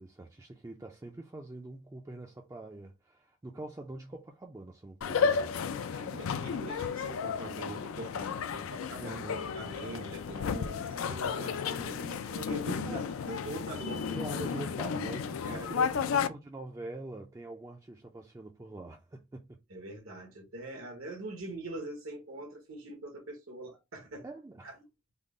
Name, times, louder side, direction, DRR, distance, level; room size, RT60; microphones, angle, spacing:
voice 1, 0.0-5.6 9.0-9.5 12.9-13.1 14.1-19.6 24.2-24.7, right 2 dB, 15° right, 0.3 m, -44 dB
sound 1, 5.0-16.3, left 6 dB, 85° left, 0.4 m, -33 dB
voice 2, 5.9-14.1 15.4-16.0 19.7-24.2 24.6-24.7, right 2 dB, 90° right, 1.1 m, -43 dB
3.6 x 2.0 x 3.5 m
head